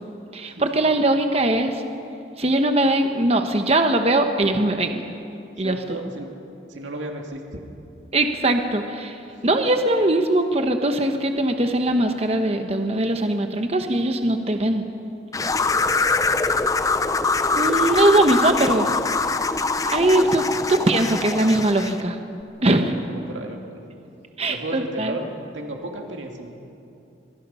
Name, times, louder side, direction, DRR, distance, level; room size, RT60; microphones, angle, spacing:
voice 1, 0.3-1.8 2.4-5.0 5.6-6.0 8.1-14.8 17.2-18.9 19.8-20.4 20.7-22.2 22.6-22.8 24.4-25.1, right 1 dB, 35° right, 6 dB, 1.1 m, -21 dB
voice 2, 5.6-6.3 6.7-7.4 9.3-9.6 15.8-16.4 20.1-20.3 22.6-23.8 24.5-25.2 25.5-26.5, right 2 dB, 85° right, 2 dB, 2.4 m, -34 dB
sound 1, 15.3-22.0, left 3 dB, 20° left, 0.6 m, -23 dB
24.0 x 23.5 x 5.7 m, 2.7 s
head